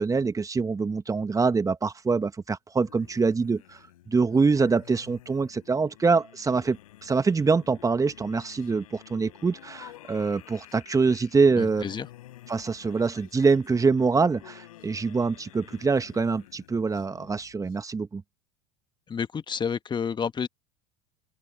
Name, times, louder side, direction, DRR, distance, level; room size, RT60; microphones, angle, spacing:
voice 1, 0.0-3.8 4.1-11.8 12.5-18.2, right 4 dB, 15° right, 1.7 m, -25 dB
sound 1, 2.8-17.7, left 15 dB, 70° left, 5.9 m, -51 dB
voice 2, 11.6-12.1 19.1-20.5, left 6 dB, 25° left, 1.5 m, -30 dB
open air
figure-of-eight pair, 80°, 19 cm